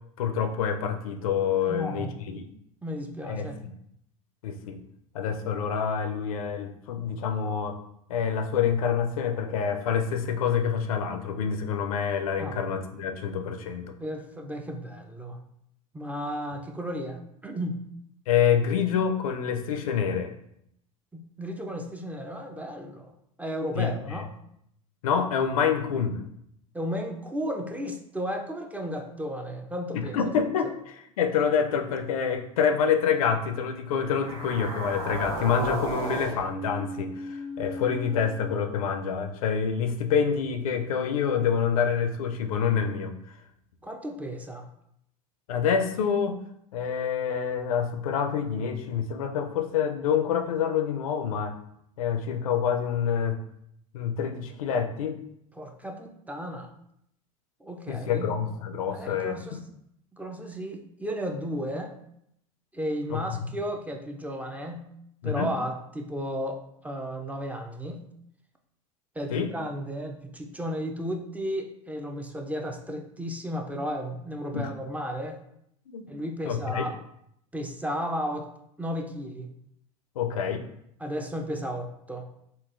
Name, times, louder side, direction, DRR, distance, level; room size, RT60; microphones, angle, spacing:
voice 1, 0.2-2.4 3.2-3.7 4.4-4.8 5.1-7.8 8.1-13.9 18.3-20.3 23.8-24.2 25.0-26.2 29.9-43.1 45.5-46.4 46.7-51.5 52.0-53.4 53.9-55.2 57.9-59.6 63.1-63.2 65.2-65.5 69.3-69.5 74.5-74.7 75.9-76.0 76.4-76.9 80.2-80.6, left 7 dB, 80° left, 6 dB, 0.4 m, -27 dB
voice 2, 1.7-2.2 2.8-3.6 12.4-12.6 14.0-15.4 15.9-17.8 21.1-23.1 23.4-24.3 26.7-30.2 30.6-30.7 43.8-44.7 55.6-56.7 57.6-58.3 58.9-59.6 60.1-61.9 62.7-64.9 65.2-68.0 69.2-75.4 76.1-77.0 77.5-78.5 78.8-79.5 81.0-82.3, equal, 10° right, 3 dB, 0.4 m, -34 dB
sound 1, 34.1-38.4, right 1 dB, 90° right, 1.0 m, -35 dB
3.7 x 2.3 x 2.5 m, 0.74 s
hypercardioid pair, 90°, 18 cm